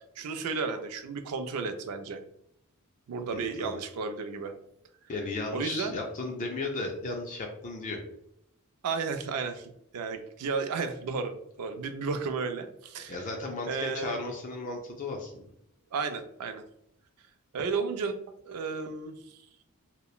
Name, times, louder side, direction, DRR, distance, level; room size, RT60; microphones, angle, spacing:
voice 1, 0.2-2.2 3.1-4.5 5.5-6.0 8.8-13.2 13.7-14.2 15.9-16.6 17.5-18.1 18.5-19.2, right 4 dB, 90° right, 8 dB, 0.4 m, -33 dB
voice 2, 3.3-3.8 5.1-8.0 13.1-15.5, left 3 dB, 35° left, 1 dB, 0.4 m, -35 dB
2.8 x 2.1 x 2.3 m, 0.74 s
head